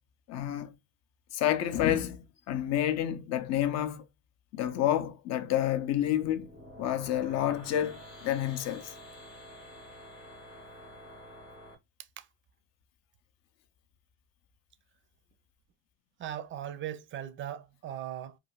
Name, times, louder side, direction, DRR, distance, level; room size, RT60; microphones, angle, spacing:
voice 1, 0.3-0.7 1.3-4.0 4.5-6.5 6.8-8.9, left 11 dB, 45° left, 0.6 m, -29 dB
sound 1, 6.1-11.7, left 1 dB, 80° left, 1.2 m, -49 dB
voice 2, 16.2-18.4, right 11 dB, 30° right, 0.5 m, -39 dB
2.5 x 2.4 x 3.0 m
supercardioid pair, 95°, 38 cm